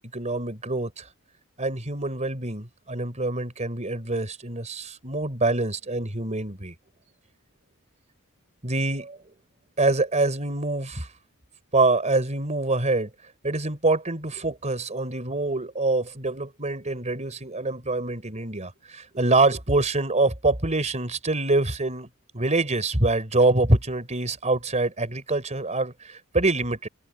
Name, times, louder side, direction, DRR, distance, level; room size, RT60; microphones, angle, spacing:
voice 1, 0.1-1.1 1.6-6.7 8.6-9.2 9.8-11.1 11.7-13.1 13.4-26.9, right 2 dB, 30° right, 4.3 m, -25 dB
head